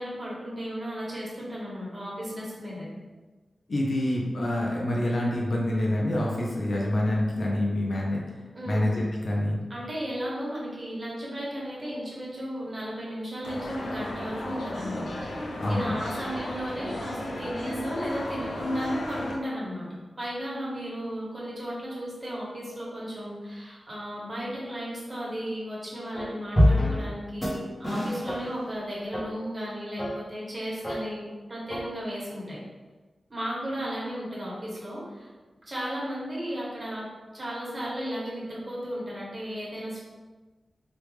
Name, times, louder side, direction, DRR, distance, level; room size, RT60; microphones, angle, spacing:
voice 1, 0.0-2.9 8.5-8.9 9.7-32.6 33.3-35.3 35.7-40.0, equal, 35° right, -6 dB, 1.3 m, -35 dB
voice 2, 3.7-8.2 8.6-9.6 15.6-15.9, left 1 dB, 60° left, -3 dB, 0.8 m, -26 dB
sound 1, 13.4-19.4, left 1 dB, 90° left, 0.5 m, -34 dB
sound 2, 26.1-26.2 26.6-27.2 27.4-27.5 27.8-28.7 29.1-29.2 30.0-30.1 30.8-31.0 31.7-31.8, left 1 dB, 20° left, 1.2 m, -24 dB
3.5 x 2.6 x 3.1 m, 1.3 s
wide cardioid pair, 80°, 0 cm